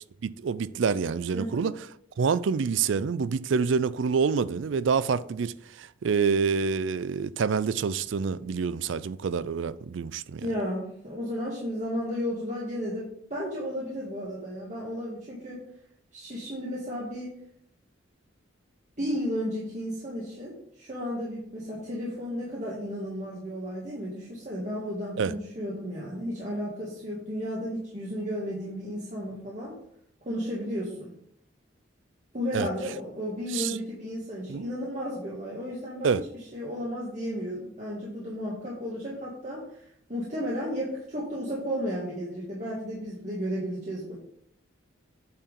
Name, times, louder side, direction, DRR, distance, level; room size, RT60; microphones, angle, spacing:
voice 1, 0.2-1.7 2.2-10.4 25.2-25.3 32.5-32.7 33.5-33.8 34.5-34.7 36.0-36.2, right 5 dB, 70° right, 0.4 m, -27 dB
voice 2, 1.3-1.7 10.4-15.6 16.1-17.3 19.0-29.7 30.2-31.1 32.3-36.2 36.5-39.8 40.1-44.2, equal, 35° right, 1.7 m, -33 dB
8.6 x 4.7 x 5.2 m
head